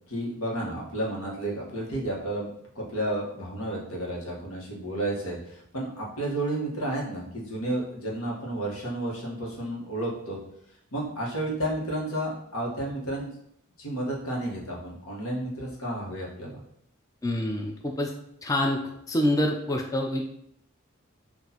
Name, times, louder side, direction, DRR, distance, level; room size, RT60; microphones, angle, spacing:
voice 1, 0.1-2.5 2.7-10.4 10.9-13.3 13.8-16.6, right 1 dB, 90° left, -3 dB, 1.2 m, -31 dB
voice 2, 17.2-18.1 18.4-18.8 19.1-20.2, left 1 dB, 15° left, 2 dB, 0.3 m, -26 dB
5.9 x 2.5 x 2.8 m, 0.74 s
head